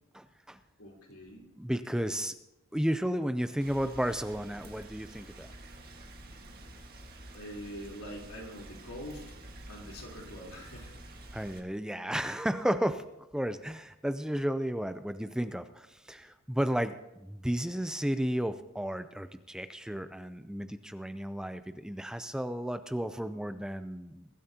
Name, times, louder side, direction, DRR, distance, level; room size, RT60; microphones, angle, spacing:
voice 1, 0.1-0.6 1.6-2.4 2.7-5.5 11.3-13.1 13.3-24.3, equal, 5° right, 10 dB, 0.4 m, -33 dB
voice 2, 0.8-1.5 7.3-9.2 9.7-11.4, equal, 85° left, -2 dB, 3.7 m, -45 dB
Rain, 3.6-11.6, right 1 dB, 45° right, 1.6 m, -49 dB
22.0 x 12.5 x 2.8 m, 0.91 s
head